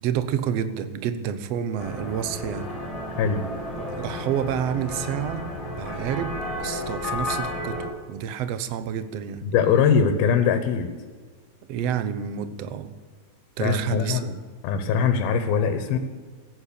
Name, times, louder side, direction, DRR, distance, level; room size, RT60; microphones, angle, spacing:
voice 1, 0.0-2.7 3.8-5.5 5.7-7.8 8.1-9.4 11.7-12.9 13.6-14.4, right 9 dB, 75° right, 11 dB, 1.5 m, -29 dB
sound 1, 1.8-7.9, left 1 dB, 10° left, 5.0 m, -32 dB
voice 2, 9.4-10.9 13.6-14.2 14.6-16.0, left 6 dB, 85° left, 8 dB, 3.0 m, -21 dB
15.0 x 9.9 x 8.6 m, 1.5 s
omnidirectional pair, 4.2 m